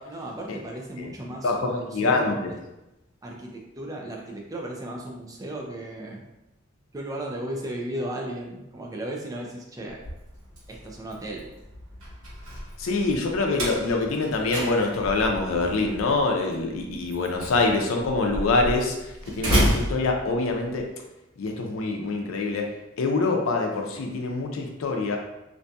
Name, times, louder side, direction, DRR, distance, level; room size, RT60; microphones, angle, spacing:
voice 1, 0.1-2.4 3.2-6.2 6.9-10.0 10.7-11.4, right 1 dB, 15° right, -1 dB, 0.3 m, -35 dB
voice 2, 1.4-2.5 12.8-18.9 19.3-20.9 21.4-22.7 23.0-25.2, left 3 dB, 80° left, 2 dB, 0.4 m, -25 dB
Slam, 9.9-20.8, equal, 85° right, 1.2 m, -31 dB
2.6 x 2.5 x 2.2 m, 0.97 s
head